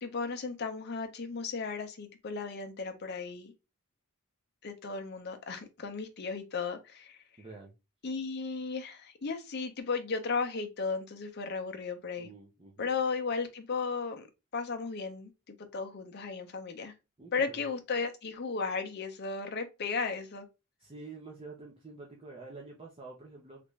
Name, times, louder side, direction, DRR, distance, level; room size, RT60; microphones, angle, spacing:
voice 1, 0.0-3.5 4.6-7.2 8.0-12.3 12.8-14.3 14.5-16.9 17.3-20.5, left 4 dB, 50° left, 0.6 m, -35 dB
voice 2, 7.4-7.7 12.2-12.9 17.2-17.6 20.8-23.6, right 3 dB, 25° right, 0.6 m, -48 dB
3.3 x 2.5 x 3.1 m
head